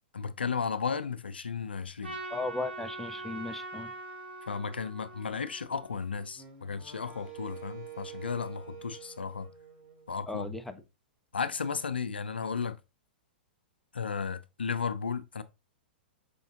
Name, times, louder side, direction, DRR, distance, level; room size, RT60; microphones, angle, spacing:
voice 1, 0.1-2.2 4.5-9.5 10.1-10.5 11.3-12.8 13.9-15.4, left 6 dB, 85° left, 0.5 m, -34 dB
Trumpet, 2.0-6.4, right 2 dB, 90° right, 1.0 m, -43 dB
voice 2, 2.3-3.9 10.3-10.8, left 2 dB, 5° left, 0.4 m, -36 dB
Wind instrument woodwind instrument, 6.3-10.6, right 9 dB, 35° right, 1.8 m, -48 dB
5.1 x 3.5 x 2.7 m
figure-of-eight pair, 110°, 5 cm